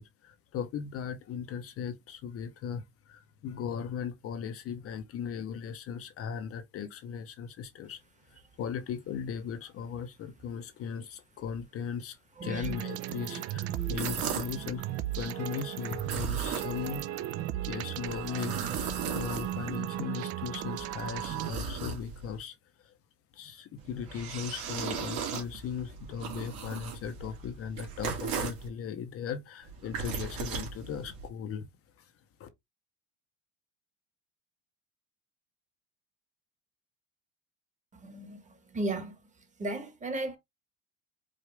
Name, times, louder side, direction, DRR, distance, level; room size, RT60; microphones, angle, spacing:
voice 1, 0.0-8.0 8.3-14.8 15.1-17.1 17.6-22.6 22.8-22.9 23.3-31.7 32.4-32.5, left 7 dB, 40° left, 0.7 m, -38 dB
voice 2, 12.4-12.7 13.3-14.1 16.3-16.4 38.0-38.4 38.7-39.1 39.6-40.4, right 2 dB, 20° right, 1.2 m, -36 dB
sound 1, 12.6-21.5, right 12 dB, 40° right, 0.4 m, -36 dB
sound 2, 13.8-14.6 15.9-17.0 18.0-19.8 20.5-22.4 23.8-28.7 29.6-31.3, right 6 dB, 65° right, 2.0 m, -37 dB
4.9 x 2.4 x 3.2 m
supercardioid pair, 120°, 38 cm